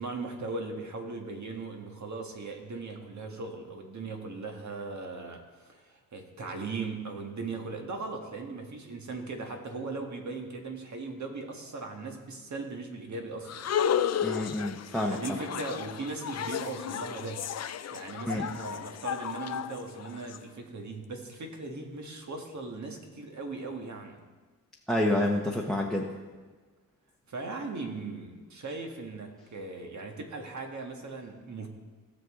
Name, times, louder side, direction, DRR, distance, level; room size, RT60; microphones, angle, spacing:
voice 1, 0.0-13.6 15.1-17.4 17.9-24.2 27.3-31.7, right 3 dB, 55° right, 3 dB, 1.6 m, -38 dB
sound 1, 13.5-20.4, left 9 dB, 50° left, 0.4 m, -33 dB
voice 2, 14.2-15.2 18.3-18.4 24.9-26.1, left 1 dB, ahead, 0 dB, 0.9 m, -28 dB
16.5 x 6.5 x 3.7 m, 1.4 s
cardioid pair, 95°, 35 cm